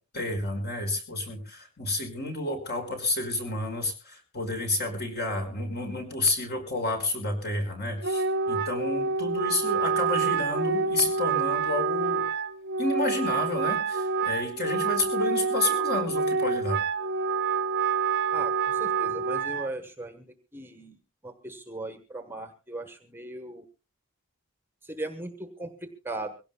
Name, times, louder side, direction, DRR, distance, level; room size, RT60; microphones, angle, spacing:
voice 1, 0.1-12.3 12.8-16.8, left 2 dB, 45° left, 4 dB, 5.1 m, -30 dB
Wind instrument woodwind instrument, 8.0-19.7, right 5 dB, 50° right, 0.8 m, -27 dB
voice 2, 18.3-20.3 20.5-21.0 21.2-23.6 24.8-26.3, right 2 dB, 10° right, 8 dB, 1.2 m, -38 dB
23.5 x 17.0 x 2.2 m, 0.32 s
head